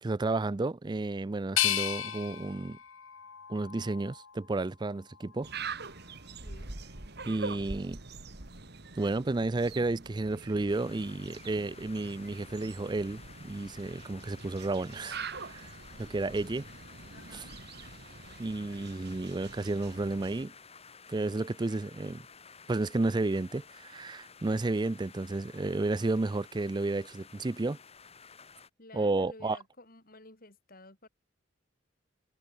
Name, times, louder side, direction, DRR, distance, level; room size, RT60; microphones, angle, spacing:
voice 1, 0.0-2.8 3.5-5.5 7.3-8.0 9.0-15.2 15.5-15.7 16.0-16.6 17.3-17.4 18.4-20.5 21.1-22.3 22.7-27.8 28.9-29.6, right 2 dB, 20° right, 0.4 m, -32 dB
sound 1, 1.6-4.5 5.0-5.9, left 12 dB, 80° left, 1.5 m, -34 dB
sound 2, 5.4-20.5, right 4 dB, 55° right, 2.4 m, -44 dB
voice 2, 6.4-6.7 16.1-16.7 17.1-17.6 28.8-31.1, left 2 dB, 45° left, 5.2 m, -53 dB
sound 3, 10.7-28.7, left 5 dB, 30° left, 6.4 m, -53 dB
head